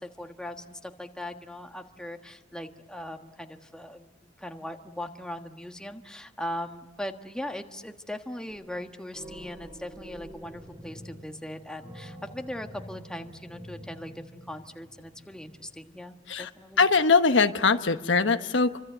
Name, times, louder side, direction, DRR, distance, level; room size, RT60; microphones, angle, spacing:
voice 1, 0.0-16.9, left 1 dB, 5° left, 5 dB, 1.4 m, -39 dB
sound 1, 8.5-8.9 9.1-15.9, equal, 20° right, 2.3 m, -47 dB
voice 2, 16.8-18.8, left 4 dB, 85° left, 9 dB, 1.2 m, -22 dB
28.5 x 25.0 x 8.0 m, 1.1 s
head